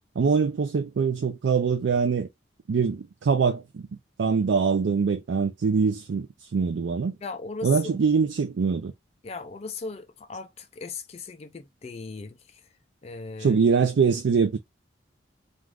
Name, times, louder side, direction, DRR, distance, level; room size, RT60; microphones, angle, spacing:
voice 1, 0.2-2.3 2.7-3.9 4.2-7.2 7.6-8.9 13.4-14.6, right 5 dB, 75° right, 0.4 m, -23 dB
voice 2, 7.2-8.0 9.2-12.7 13.0-13.6, left 4 dB, 35° left, 0.3 m, -38 dB
2.5 x 2.4 x 3.2 m
head